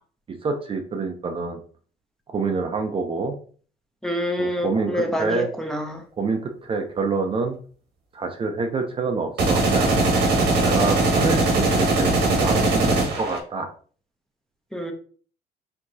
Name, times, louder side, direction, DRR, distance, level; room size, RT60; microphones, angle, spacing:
voice 1, 0.4-1.6 2.3-3.4 4.4-5.5 6.2-7.6 8.1-9.9 10.6-13.7, right 4 dB, 30° right, 0.6 m, -27 dB
voice 2, 4.0-6.0 14.7-14.9, equal, 5° left, 0.8 m, -27 dB
sound 1, 9.4-13.4, right 2 dB, 80° right, 1.3 m, -20 dB
4.6 x 3.6 x 2.7 m
cardioid pair, 110°, 17 cm